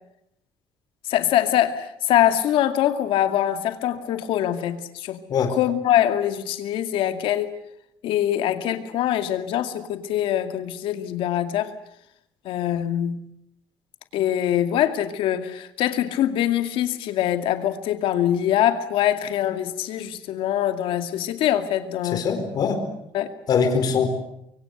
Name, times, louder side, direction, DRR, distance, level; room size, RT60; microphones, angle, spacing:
voice 1, 1.1-5.2 5.6-7.5 8.0-11.7 12.4-13.2 14.1-22.2 23.1-23.3, left 11 dB, 80° left, 8 dB, 2.4 m, -23 dB
voice 2, 22.1-22.8 23.5-24.1, left 6 dB, 50° left, 6 dB, 4.3 m, -22 dB
25.0 x 23.5 x 8.1 m, 0.79 s
cardioid pair, 165°, 9 cm